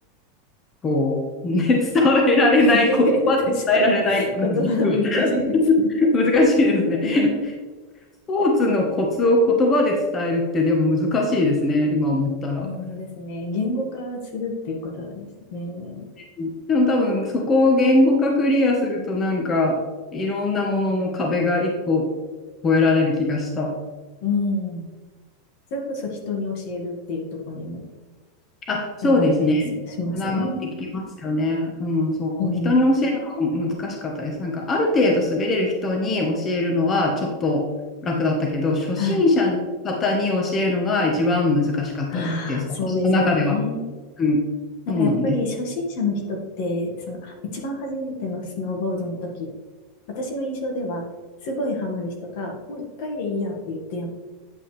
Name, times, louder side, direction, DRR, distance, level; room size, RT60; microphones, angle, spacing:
voice 1, 0.8-3.4 3.7-7.3 8.3-12.7 16.4-19.8 20.1-22.0 22.6-23.7 28.7-29.7 30.1-30.5 30.9-37.6 38.0-39.6 39.8-43.6 44.2-44.4 44.9-45.4, left 2 dB, 30° left, 0 dB, 1.3 m, -21 dB
voice 2, 2.6-3.0 3.8-5.4 7.0-7.4 12.6-16.0 24.2-24.9 25.7-27.8 29.0-30.6 32.4-32.7 39.0-39.2 42.1-43.9 44.9-49.5 50.1-51.0 51.4-54.1, left 2 dB, 60° left, 1 dB, 1.9 m, -28 dB
9.3 x 5.5 x 3.4 m, 1.3 s
hypercardioid pair, 115°, 0 cm